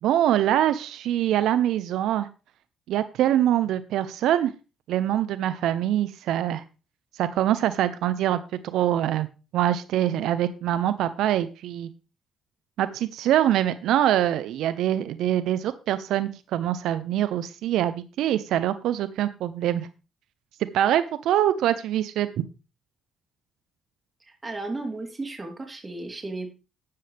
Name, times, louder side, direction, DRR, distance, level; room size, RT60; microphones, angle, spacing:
voice 1, 0.0-2.3 2.9-4.5 4.9-6.6 7.1-9.3 9.5-11.9 12.8-19.9 20.7-22.3, right 11 dB, 85° right, 13 dB, 0.7 m, -24 dB
voice 2, 24.3-26.5, right 2 dB, 25° right, 3 dB, 3.6 m, -34 dB
12.5 x 9.3 x 3.4 m, 0.31 s
cardioid pair, 90°, 0 cm